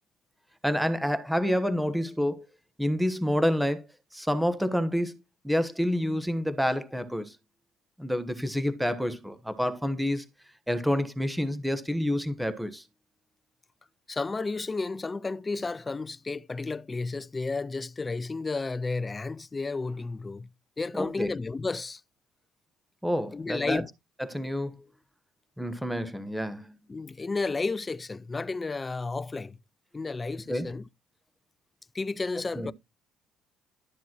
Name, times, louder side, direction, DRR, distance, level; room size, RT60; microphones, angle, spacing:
voice 1, 0.6-2.5 2.8-3.9 4.1-5.1 5.4-7.4 8.0-10.2 10.7-12.8 21.0-21.3 23.0-23.8 24.2-24.8 25.6-26.7 30.5-30.8 32.5-32.7, equal, 5° right, 1.1 m, -28 dB
voice 2, 14.1-20.5 20.8-22.0 23.3-23.9 26.9-29.6 29.9-30.8 31.9-32.7, left 3 dB, 20° left, 0.4 m, -32 dB
12.0 x 7.2 x 3.0 m
cardioid pair, 100°, 0 cm